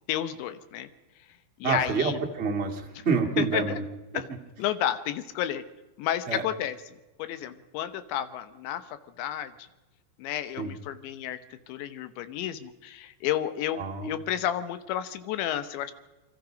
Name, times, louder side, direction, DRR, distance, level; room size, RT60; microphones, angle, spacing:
voice 1, 0.1-0.9 1.6-2.2 3.4-3.8 4.1-4.3 4.6-5.6 6.0-6.8 7.2-9.7 10.2-15.9, left 11 dB, 75° left, 12 dB, 3.2 m, -31 dB
voice 2, 1.6-3.8 6.3-6.4 10.6-10.7 13.8-14.1, right 5 dB, 45° right, 0 dB, 0.8 m, -27 dB
27.0 x 24.0 x 5.2 m, 1.1 s
omnidirectional pair, 5.5 m